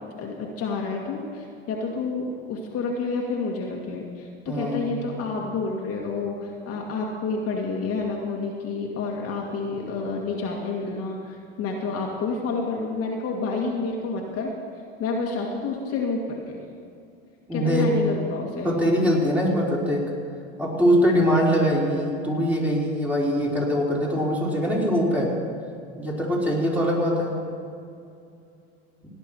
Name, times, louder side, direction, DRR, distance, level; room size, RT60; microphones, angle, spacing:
voice 1, 0.2-14.5 15.0-16.6 17.5-18.7, left 4 dB, 45° left, -1 dB, 2.2 m, -29 dB
voice 2, 4.5-4.8 17.5-18.0 18.6-20.1 20.6-25.4 26.0-27.3, equal, 5° right, -4 dB, 4.1 m, -22 dB
17.5 x 10.0 x 4.6 m, 2.5 s
hypercardioid pair, 85°, 33 cm